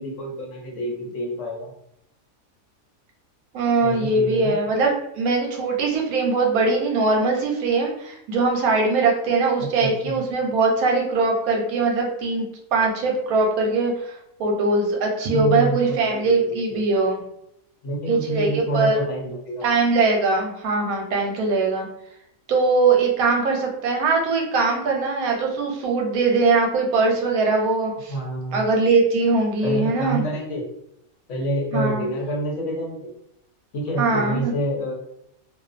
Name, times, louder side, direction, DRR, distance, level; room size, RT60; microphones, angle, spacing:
voice 1, 0.0-1.7 3.8-4.6 9.6-10.2 15.3-16.8 17.8-19.6 28.1-28.6 29.6-30.7 31.3-33.1 33.7-34.9, right 1 dB, 65° left, -2 dB, 1.0 m, -28 dB
voice 2, 3.5-4.9 5.2-12.4 12.7-17.2 18.1-19.0 19.6-21.9 22.5-28.1 28.5-30.2 31.7-32.0 34.0-34.5, right 3 dB, 85° right, 1 dB, 1.1 m, -21 dB
2.5 x 2.3 x 2.4 m, 0.77 s
omnidirectional pair, 1.5 m